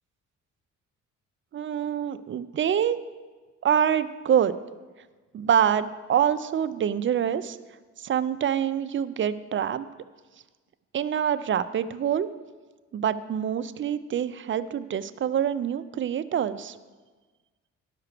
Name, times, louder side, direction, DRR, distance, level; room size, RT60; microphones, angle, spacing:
voice 1, 1.5-3.0 3.6-4.6 5.3-7.6 8.0-9.9 10.9-12.3 12.9-16.8, right 9 dB, 40° right, 12 dB, 0.5 m, -25 dB
10.5 x 5.9 x 6.7 m, 1.3 s
cardioid pair, 90°, 30 cm